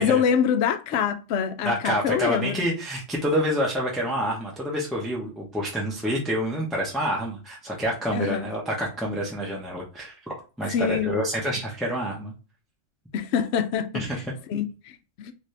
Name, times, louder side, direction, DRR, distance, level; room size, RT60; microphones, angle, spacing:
voice 1, 0.0-2.6 8.1-8.5 10.7-11.1 13.1-14.0 14.5-15.3, left 7 dB, 70° left, 0.8 m, -25 dB
voice 2, 1.6-12.3 13.9-14.2, equal, ahead, 0.9 m, -27 dB
4.1 x 2.8 x 3.2 m
omnidirectional pair, 1.3 m